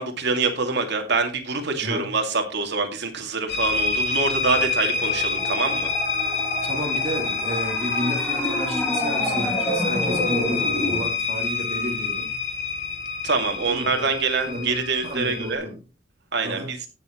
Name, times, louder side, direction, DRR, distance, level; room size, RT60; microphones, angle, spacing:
voice 1, 0.0-5.9 13.2-15.7 16.3-16.9, right 4 dB, 60° right, 4 dB, 2.5 m, -25 dB
sound 1, 3.5-15.5, left 4 dB, 65° left, 2.7 m, -27 dB
sound 2, 4.5-11.1, equal, ahead, 2.9 m, -30 dB
voice 2, 6.6-12.3 13.7-14.1 14.4-15.8 16.4-16.7, equal, 35° right, 1 dB, 3.1 m, -32 dB
17.0 x 7.2 x 3.1 m, 0.33 s
head